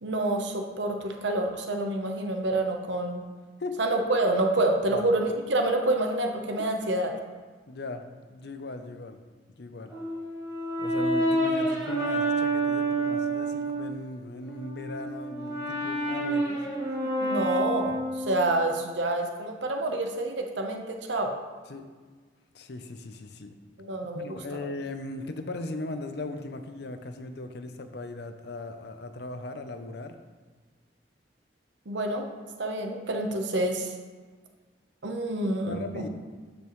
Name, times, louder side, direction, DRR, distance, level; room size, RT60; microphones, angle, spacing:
voice 1, 0.0-3.2 3.8-7.1 17.2-21.3 23.8-24.4 31.9-32.3 32.6-33.9 35.0-36.1, right 1 dB, 75° right, 3 dB, 0.9 m, -27 dB
voice 2, 7.7-8.0 8.3-9.2 9.6-9.9 10.8-16.7 17.0-17.2 21.7-21.9 22.5-23.6 24.1-30.2 35.6-36.1, left 2 dB, 60° left, 8 dB, 0.6 m, -38 dB
Brass instrument, 9.9-13.9 14.4-18.5, right 1 dB, 20° right, 1.8 m, -28 dB
12.0 x 5.2 x 3.1 m, 1.4 s
head